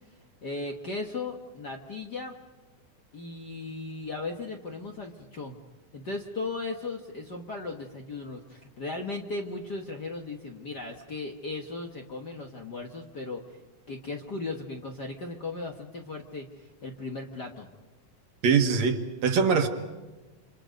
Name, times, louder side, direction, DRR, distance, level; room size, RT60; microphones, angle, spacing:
voice 1, 0.4-2.4 3.1-5.6 5.9-13.4 13.9-17.7, left 3 dB, 45° left, 2 dB, 1.5 m, -37 dB
voice 2, 18.4-19.7, right 6 dB, 65° right, 6 dB, 2.5 m, -23 dB
28.0 x 27.5 x 5.2 m, 1.2 s
omnidirectional pair, 3.5 m